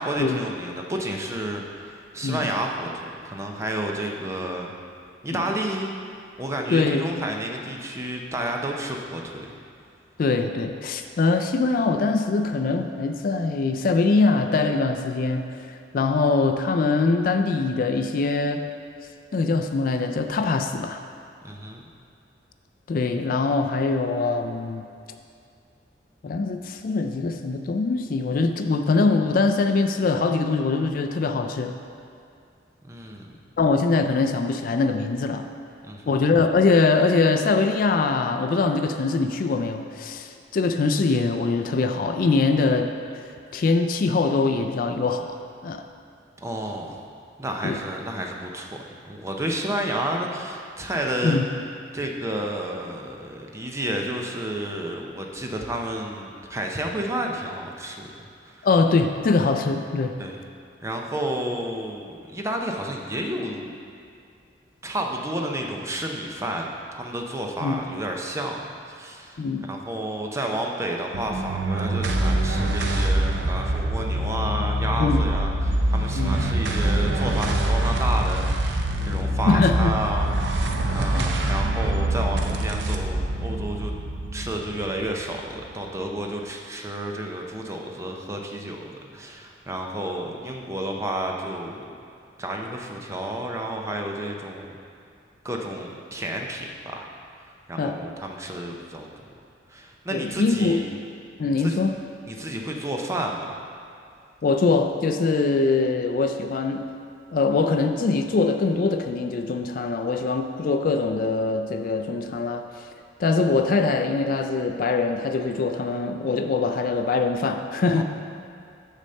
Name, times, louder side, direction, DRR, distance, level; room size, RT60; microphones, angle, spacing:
voice 1, 0.0-4.7 5.2-5.9 6.4-9.4 21.4-21.8 32.8-33.4 35.8-36.2 46.4-47.0 47.4-51.4 51.9-58.1 58.4-58.7 60.2-60.4 60.8-63.7 64.8-83.9 84.3-91.9 92.4-94.7 95.4-97.1 97.7-99.1 99.7-100.9 101.6-101.8 102.3-103.4 117.9-118.0, right 1 dB, 15° right, 1 dB, 0.6 m, -31 dB
voice 2, 6.7-7.3 10.2-15.7 15.9-18.7 19.3-21.0 22.9-24.9 26.2-31.7 33.6-35.5 36.1-42.9 43.5-45.4 45.6-45.8 47.6-47.8 51.2-51.4 58.6-60.2 67.6-67.8 69.4-69.7 75.0-75.3 76.1-76.4 79.5-79.9 81.1-81.3 97.8-98.0 100.1-100.8 101.4-102.0 104.4-106.9 107.3-112.7 113.2-118.0, left 3 dB, 50° left, 6 dB, 0.3 m, -23 dB
sound 1, 71.1-85.7, right 1 dB, 80° right, 0.6 m, -25 dB
6.5 x 4.1 x 6.5 m, 2.4 s
head